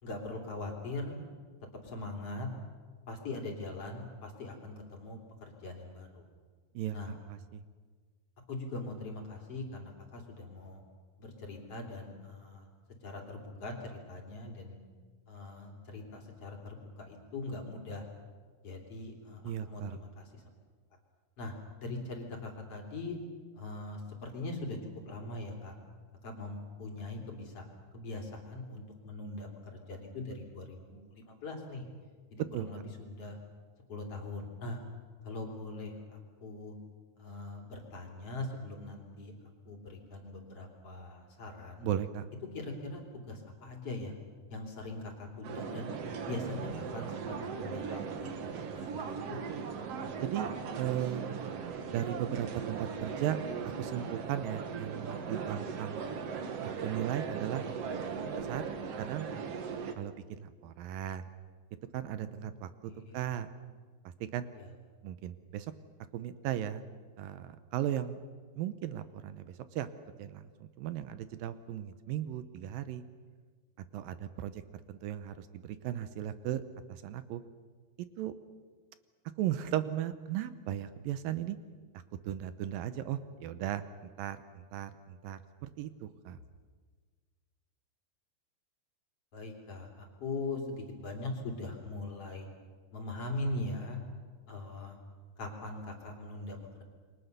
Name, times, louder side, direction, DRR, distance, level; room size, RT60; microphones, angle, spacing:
voice 1, 0.0-1.1 1.8-2.5 3.1-6.2 6.9-7.1 8.5-10.8 11.2-12.7 13.0-14.8 15.3-18.1 18.6-20.4 21.4-23.2 23.5-24.8 25.0-25.8 26.2-27.7 27.9-31.8 32.3-33.4 33.9-34.8 35.2-36.7 37.2-39.3 39.7-41.9 42.5-43.0 43.3-44.1 44.5-45.9 46.3-48.3 48.6-49.4 62.3-62.4 62.9-63.2 64.6-64.7 89.3-92.5 92.9-94.0 94.5-95.0 95.4-96.8, left 2 dB, 40° left, 1 dB, 3.8 m, -41 dB
voice 2, 6.7-7.6 19.4-20.0 32.5-32.7 41.8-42.3 50.2-51.2 51.9-53.4 53.6-56.0 56.8-57.7 58.3-58.6 59.0-59.3 60.0-61.3 61.9-63.5 64.0-64.5 65.0-65.7 66.1-66.8 67.2-68.2 68.6-69.9 70.2-73.0 73.9-74.6 74.9-76.6 76.9-77.4 78.2-78.3 79.4-81.6 81.9-86.4, right 11 dB, 75° right, 12 dB, 2.3 m, -36 dB
sound 1, 45.4-59.9, right 6 dB, 55° right, 1.8 m, -38 dB
28.5 x 23.0 x 6.8 m, 1.5 s
omnidirectional pair, 4.6 m